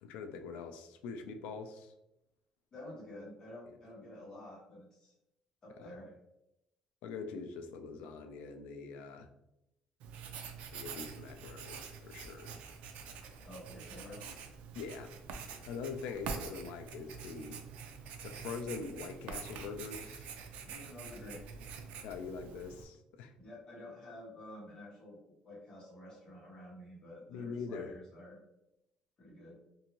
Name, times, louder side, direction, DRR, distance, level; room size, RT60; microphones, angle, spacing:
voice 1, 0.0-1.9 5.8-5.9 7.0-9.3 10.7-12.6 14.0-14.4 14.7-15.1 15.7-17.6 18.2-20.3 22.0-23.3 27.3-27.9, left 5 dB, 90° left, 6 dB, 0.4 m, -43 dB
voice 2, 2.7-5.1 5.6-6.1 13.4-14.3 20.6-21.4 23.4-25.2 25.4-28.4 29.2-29.6, left 1 dB, 30° left, -5 dB, 1.2 m, -50 dB
Writing, 10.0-22.8, right 6 dB, 75° right, 0.4 m, -46 dB
2.6 x 2.6 x 2.8 m, 0.87 s
cardioid pair, 155°, 2 cm